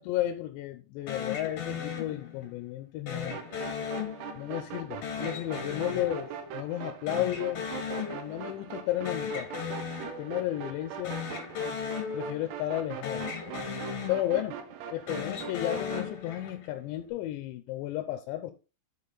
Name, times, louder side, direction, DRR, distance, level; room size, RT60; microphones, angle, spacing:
voice 1, 0.0-3.4 4.4-7.7 8.1-9.5 10.2-11.2 12.1-13.3 14.1-18.5, left 14 dB, 80° left, 2.8 m, -33 dB
sound 1, 1.1-2.6 3.1-4.6 5.0-6.8 7.1-8.6 8.9-10.6 11.0-12.8 13.0-14.6 15.0-16.7, left 6 dB, 60° left, 1.5 m, -37 dB
sound 2, 3.3-16.1, right 8 dB, 75° right, 2.8 m, -42 dB
10.5 x 3.9 x 4.0 m
omnidirectional pair, 5.2 m